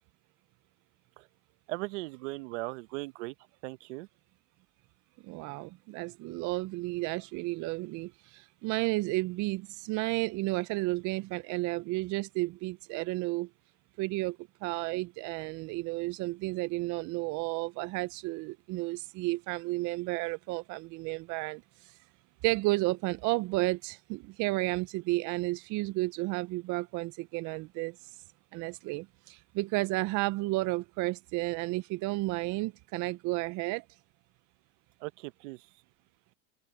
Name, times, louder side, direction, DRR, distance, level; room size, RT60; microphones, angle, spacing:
voice 1, 1.7-3.3 3.6-4.1 35.0-35.7, right 23 dB, 75° right, 1.1 m, -38 dB
voice 2, 5.3-13.5 14.0-14.4 14.6-21.6 22.4-27.9 28.5-33.8, right 21 dB, 55° right, 0.6 m, -32 dB
supercardioid pair, 105°, 36 cm